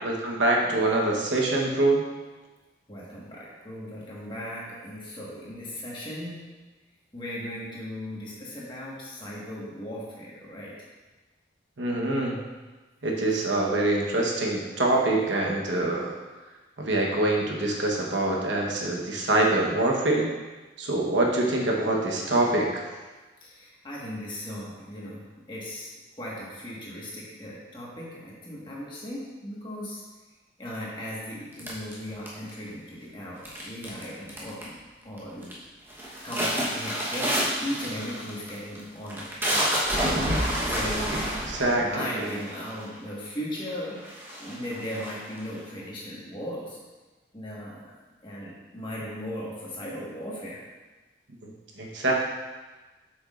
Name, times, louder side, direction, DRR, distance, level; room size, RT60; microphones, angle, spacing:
voice 1, 0.0-2.0 11.8-12.4 13.0-16.1 16.8-20.3 20.8-22.9 41.5-41.9 51.4-51.5 51.8-52.1, right 2 dB, 75° right, -1 dB, 1.1 m, -25 dB
voice 2, 2.9-6.4 7.1-10.7 23.4-25.2 25.5-25.9 26.2-30.0 30.6-34.7 35.0-35.5 36.2-37.3 37.6-39.7 40.6-41.2 41.6-44.0 44.4-46.8 47.3-47.9 48.2-50.6, equal, 25° left, -5 dB, 1.5 m, -37 dB
sound 1, 31.6-32.7 33.4-34.0 34.3-34.8 35.2-35.5 35.9-42.9 43.6-43.7 44.0-45.6, equal, 10° right, 1.0 m, -29 dB
8.0 x 6.2 x 2.5 m, 1.2 s
head